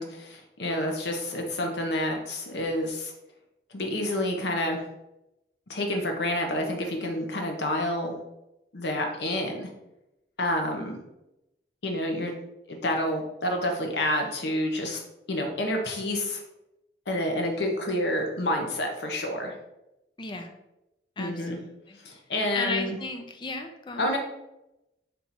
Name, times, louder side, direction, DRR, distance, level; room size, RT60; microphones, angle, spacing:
voice 1, 0.0-3.1 3.7-4.8 5.7-8.2 8.7-9.7 10.4-11.0 11.8-12.3 12.7-15.0 15.3-16.4 17.1-19.6 21.2-21.6 22.0-23.0 24.0-24.2, left 1 dB, 70° left, 2 dB, 0.8 m, -29 dB
voice 2, 20.2-20.6 21.2-22.0 22.5-24.1, left 3 dB, 25° left, 5 dB, 0.4 m, -35 dB
3.4 x 2.9 x 4.0 m, 0.89 s
head